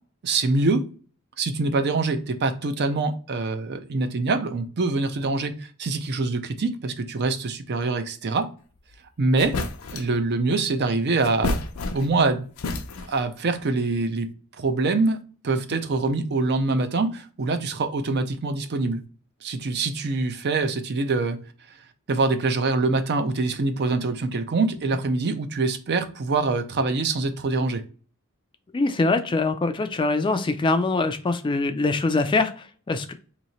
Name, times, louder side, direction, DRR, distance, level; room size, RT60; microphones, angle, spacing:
voice 1, 0.2-0.9 1.4-8.5 9.2-9.6 9.9-11.6 11.9-12.5 13.1-14.3 14.6-19.0 19.4-21.4 22.1-27.8, right 3 dB, 50° right, 9 dB, 0.5 m, -24 dB
sound 1, 8.9-9.0 9.4-10.2 11.2-12.3 12.6-13.3, left 2 dB, 75° left, 0.6 m, -30 dB
voice 2, 28.7-33.1, left 3 dB, 20° left, 8 dB, 0.4 m, -23 dB
3.0 x 2.7 x 4.1 m, 0.38 s
head